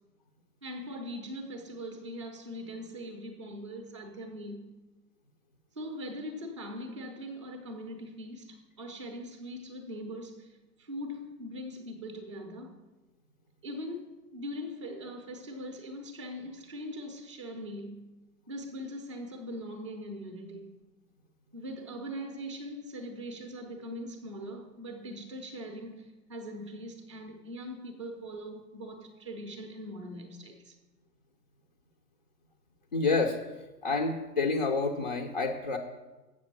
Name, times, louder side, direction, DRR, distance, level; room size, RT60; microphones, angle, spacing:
voice 1, 0.6-4.7 5.7-12.8 13.6-18.0 18.5-20.7 21.5-30.8, equal, 20° right, 0.6 m, -41 dB
voice 2, 32.9-33.4 33.8-35.8, left 3 dB, 30° left, 0.5 m, -28 dB
7.5 x 7.1 x 5.8 m
hypercardioid pair, 160°, 50 cm